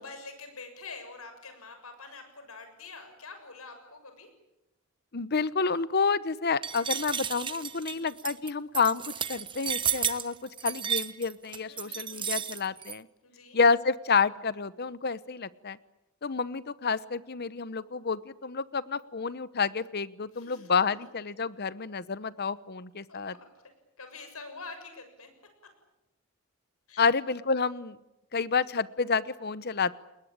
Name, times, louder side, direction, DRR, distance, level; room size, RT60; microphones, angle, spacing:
voice 1, 0.0-4.3 7.8-8.1 11.6-12.5 13.2-13.6 20.3-20.7 23.1-23.5 24.0-25.3 26.9-27.1, left 4 dB, 85° left, 7 dB, 6.7 m, -46 dB
voice 2, 5.1-13.1 13.5-15.8 16.2-23.4 27.0-28.0 28.3-30.0, left 5 dB, 50° left, 17 dB, 1.0 m, -29 dB
sound 1, 6.6-13.0, right 8 dB, 25° right, 1.1 m, -32 dB
29.0 x 21.0 x 8.9 m, 0.93 s
head